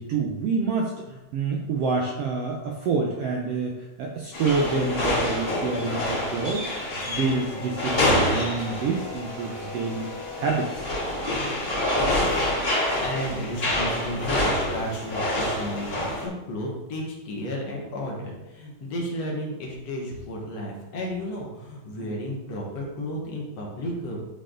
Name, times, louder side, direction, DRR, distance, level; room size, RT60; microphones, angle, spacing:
voice 1, 0.0-6.7 7.1-10.9 22.0-22.1, right 4 dB, 75° right, 0 dB, 1.5 m, -27 dB
sound 1, 4.3-16.3, left 1 dB, 25° left, 1.8 m, -27 dB
voice 2, 11.9-12.5 13.0-24.2, equal, 60° left, -2 dB, 2.3 m, -33 dB
10.0 x 4.5 x 3.8 m, 1.0 s
omnidirectional pair, 3.5 m